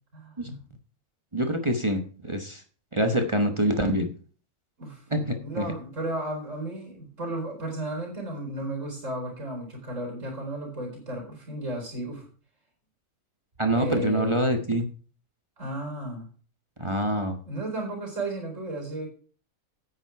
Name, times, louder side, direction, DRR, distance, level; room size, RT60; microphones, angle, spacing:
voice 1, 0.1-0.6 4.8-5.0 5.4-12.3 13.7-14.4 15.6-16.3 17.4-19.1, right 1 dB, 55° right, 1 dB, 4.7 m, -34 dB
voice 2, 1.3-2.6 2.9-4.1 5.1-5.7 13.6-14.9 16.8-17.4, right 1 dB, 20° right, 5 dB, 1.1 m, -25 dB
9.5 x 9.3 x 4.7 m, 0.40 s
omnidirectional pair, 1.5 m